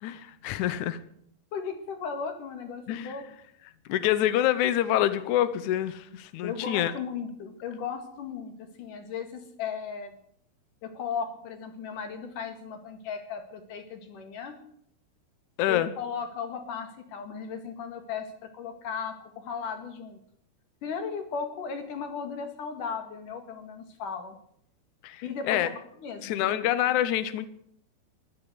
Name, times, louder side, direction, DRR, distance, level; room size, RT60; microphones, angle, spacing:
voice 1, 0.0-1.0 2.9-3.1 3.9-6.9 15.6-15.9 25.0-25.7 26.2-27.5, left 12 dB, 80° left, 12 dB, 1.7 m, -26 dB
voice 2, 1.5-3.2 6.4-10.2 10.8-14.6 15.7-20.2 20.8-24.4 25.2-25.7 26.0-26.5, left 6 dB, 55° left, 6 dB, 3.4 m, -36 dB
14.0 x 12.0 x 8.2 m, 0.67 s
omnidirectional pair, 4.6 m